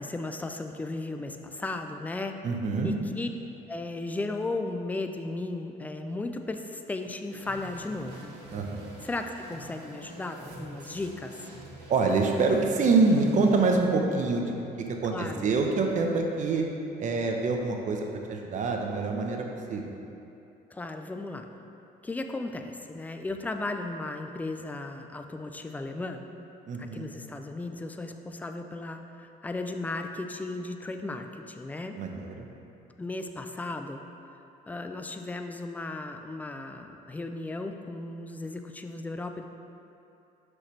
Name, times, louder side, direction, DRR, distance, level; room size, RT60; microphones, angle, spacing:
voice 1, 0.0-2.4 2.8-3.3 3.7-8.3 9.0-11.4 15.1-15.5 20.7-21.5 22.0-26.2 26.8-32.0 33.0-34.0 34.7-39.5, left 2 dB, 10° left, 6 dB, 0.3 m, -35 dB
voice 2, 2.4-2.9 8.5-8.9 11.9-16.6 17.0-20.0 26.7-27.1 32.0-32.5, right 3 dB, 45° right, 2 dB, 0.7 m, -26 dB
sound 1, 7.3-13.7, right 2 dB, 90° right, 1.1 m, -46 dB
6.4 x 5.9 x 3.2 m, 2.8 s
cardioid pair, 110°, 17 cm